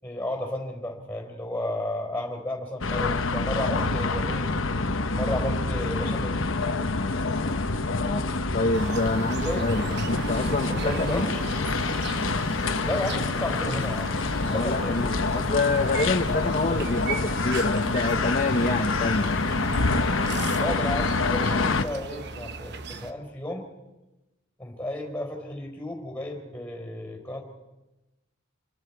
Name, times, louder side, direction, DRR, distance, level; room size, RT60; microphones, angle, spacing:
voice 1, 0.0-4.5 5.1-6.4 9.4-9.7 10.2-11.5 12.8-14.2 14.5-15.0 20.6-23.7 24.6-27.4, left 1 dB, 10° left, 3 dB, 4.3 m, -33 dB
sound 1, 2.8-21.8, left 3 dB, 70° left, 1.1 m, -27 dB
voice 2, 8.5-11.3 14.5-19.3, left 2 dB, 40° left, 2 dB, 1.1 m, -27 dB
sound 2, 8.7-23.1, right 4 dB, 55° right, 1.0 m, -37 dB
27.5 x 22.0 x 4.8 m, 1.0 s
head